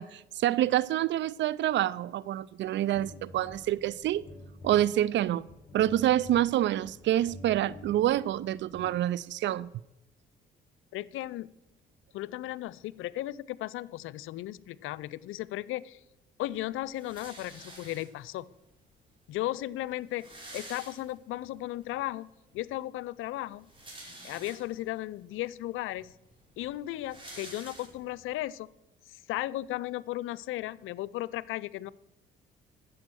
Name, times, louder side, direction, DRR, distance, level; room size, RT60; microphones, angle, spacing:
voice 1, 0.0-4.2 4.6-5.5 5.7-9.7, right 12 dB, 60° right, 0.4 m, -27 dB
sound 1, 2.9-9.5, left 1 dB, 20° left, 5.5 m, -50 dB
voice 2, 10.9-11.5 12.1-16.0 16.4-18.5 19.3-20.2 20.5-22.3 22.5-23.7 24.2-26.1 26.6-28.7 29.1-31.9, left 15 dB, 75° left, 0.5 m, -35 dB
sound 2, 16.9-18.4 19.2-19.3 19.5-19.6 19.9-21.5 21.9-22.0 23.4-24.9 25.6-25.7 25.9-28.3, right 1 dB, 25° right, 5.3 m, -48 dB
13.0 x 7.7 x 6.2 m
supercardioid pair, 70°, 21 cm